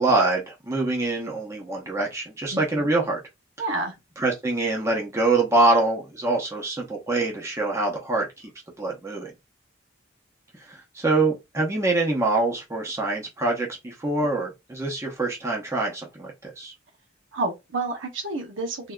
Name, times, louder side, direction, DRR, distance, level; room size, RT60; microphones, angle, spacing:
voice 1, 0.0-3.2 4.2-8.3 8.8-9.3 10.6-16.7, right 2 dB, 15° right, 0.7 m, -25 dB
voice 2, 2.5-2.9 3.6-3.9 17.3-18.9, right 2 dB, 75° right, 0.8 m, -29 dB
3.5 x 2.7 x 2.2 m
head